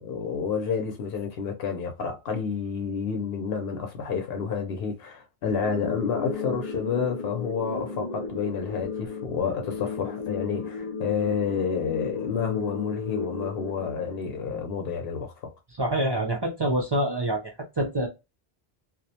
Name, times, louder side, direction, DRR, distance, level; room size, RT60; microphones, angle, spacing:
voice 1, 0.0-15.5, left 6 dB, 75° left, 0.8 m, -29 dB
sound 1, 5.6-14.6, left 5 dB, 40° left, 0.6 m, -35 dB
voice 2, 15.8-18.1, right 1 dB, 40° right, 0.3 m, -26 dB
2.3 x 2.1 x 2.7 m
omnidirectional pair, 1.1 m